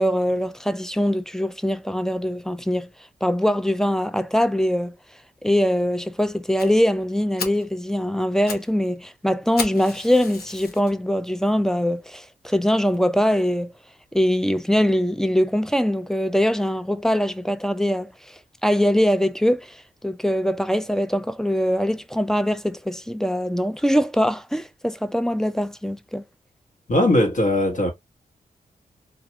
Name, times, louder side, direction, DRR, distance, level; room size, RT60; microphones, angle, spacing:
voice 1, 0.0-2.9 3.2-4.9 5.4-13.7 14.1-19.8 20.0-26.2, equal, 5° left, 0.3 m, -22 dB
Fire, 6.6-6.7 7.1-7.2 7.4-7.7 8.2-8.7 9.0-9.1 9.6-10.9 11.5-11.6 12.1-12.2 12.5-12.6 12.9-13.0, left 4 dB, 85° left, 0.8 m, -33 dB
voice 2, 26.9-27.9, left 1 dB, 55° left, 1.2 m, -19 dB
2.5 x 2.3 x 2.9 m
cardioid pair, 65°, 16 cm